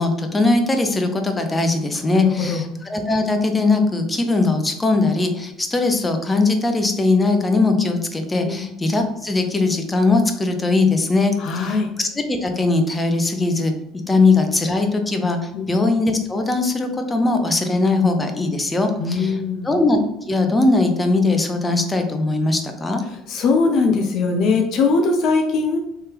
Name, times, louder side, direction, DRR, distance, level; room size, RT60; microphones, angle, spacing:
voice 1, 0.0-13.7 14.1-19.4 19.6-20.0 20.3-23.0, left 3 dB, 20° left, 5 dB, 0.7 m, -20 dB
voice 2, 2.1-2.6 8.4-8.6 11.4-11.9 15.5-15.7 19.0-19.7 23.1-25.8, left 4 dB, 55° left, 3 dB, 0.5 m, -20 dB
3.3 x 2.7 x 3.6 m, 0.83 s
figure-of-eight pair, 60°, 0 cm